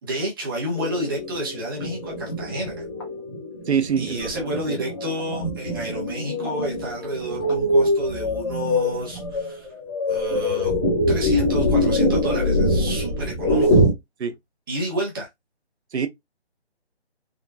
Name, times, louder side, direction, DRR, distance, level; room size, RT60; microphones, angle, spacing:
voice 1, 0.0-2.8 4.0-9.7 10.1-10.7 11.1-13.8 14.7-15.3, right 1 dB, 20° right, 0.9 m, -30 dB
sound 1, 0.8-13.9, left 1 dB, 25° left, 1.0 m, -24 dB
voice 2, 3.7-4.8 14.2-14.3 15.9-16.1, right 7 dB, 75° right, 0.7 m, -25 dB
3.6 x 2.2 x 2.6 m
hypercardioid pair, 160°, 33 cm